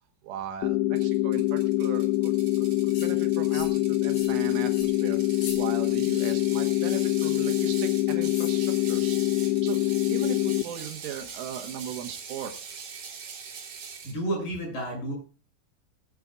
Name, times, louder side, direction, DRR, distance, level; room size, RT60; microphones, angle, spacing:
voice 1, 0.2-2.3 2.6-5.3 5.5-9.2 9.5-12.6, right 9 dB, 80° right, 6 dB, 3.7 m, -38 dB
sound 1, 0.6-10.6, left 17 dB, 80° left, 2.8 m, -25 dB
Ratchet pawl, 1.0-14.2, right 6 dB, 50° right, 3.3 m, -42 dB
sound 2, 2.9-3.1 3.5-3.8 4.1-4.4 4.7-4.9 5.3-5.6 6.1-6.4 6.8-7.1 8.3-8.6, left 4 dB, 60° left, 7.2 m, -41 dB
voice 2, 13.8-15.1, right 1 dB, 40° left, 0 dB, 8.0 m, -31 dB
20.5 x 10.0 x 2.4 m, 0.34 s
omnidirectional pair, 5.9 m